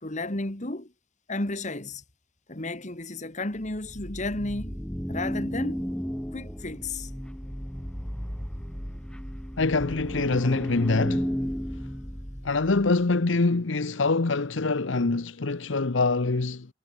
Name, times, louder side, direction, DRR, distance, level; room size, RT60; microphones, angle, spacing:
voice 1, 0.0-0.9 1.3-2.0 2.5-4.8 5.1-5.8 6.3-7.1, left 2 dB, 40° left, 2.2 m, -33 dB
sound 1, 3.6-12.9, equal, 5° left, 1.6 m, -34 dB
voice 2, 9.6-11.3 12.4-16.7, left 3 dB, 80° left, 0.9 m, -24 dB
head